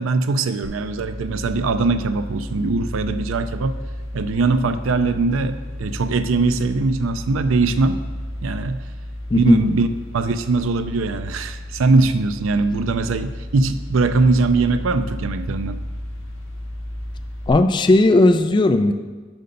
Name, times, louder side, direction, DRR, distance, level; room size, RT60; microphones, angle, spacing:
voice 1, 0.0-3.8 4.1-8.0 8.4-8.8 9.4-9.9 10.1-15.8, right 3 dB, 75° right, 10 dB, 0.4 m, -21 dB
sound 1, 0.6-17.5, left 1 dB, 85° left, 1.8 m, -33 dB
voice 2, 9.3-9.7 17.5-18.9, left 2 dB, 25° left, 9 dB, 0.3 m, -16 dB
7.9 x 5.5 x 5.2 m, 1.4 s
head